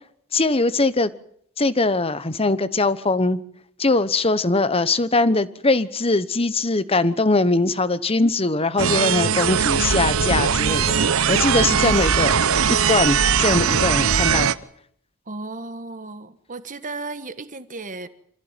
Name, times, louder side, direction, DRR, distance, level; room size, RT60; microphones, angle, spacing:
voice 1, 0.3-1.1 1.6-3.4 3.8-14.5, left 2 dB, 25° left, 1.1 m, -21 dB
sound 1, 8.8-14.5, right 7 dB, 65° right, 0.9 m, -20 dB
voice 2, 15.2-18.1, right 3 dB, 35° right, 1.5 m, -34 dB
27.0 x 15.0 x 9.1 m
head